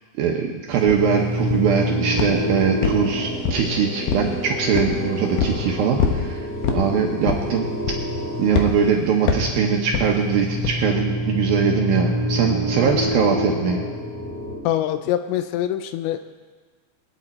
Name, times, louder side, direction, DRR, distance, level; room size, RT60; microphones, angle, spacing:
voice 1, 0.2-6.5 6.7-7.7 8.4-13.8, right 6 dB, 75° right, 1 dB, 2.2 m, -22 dB
sound 1, 0.9-1.0 1.5-1.8 2.2-2.4 2.8-3.7 4.1-4.3 4.7-5.0 5.4-5.6 6.0-6.3 6.6-6.9 7.3-7.5 7.9-8.2 8.5-8.7 9.3-9.5 9.9-10.1 10.6-10.8, left 6 dB, 70° left, 2.3 m, -23 dB
sound 2, 1.0-14.6, equal, 35° left, 3.5 m, -27 dB
voice 2, 14.6-16.2, left 12 dB, 85° left, 9 dB, 3.0 m, -24 dB
23.0 x 9.3 x 4.3 m, 1.4 s
omnidirectional pair, 5.3 m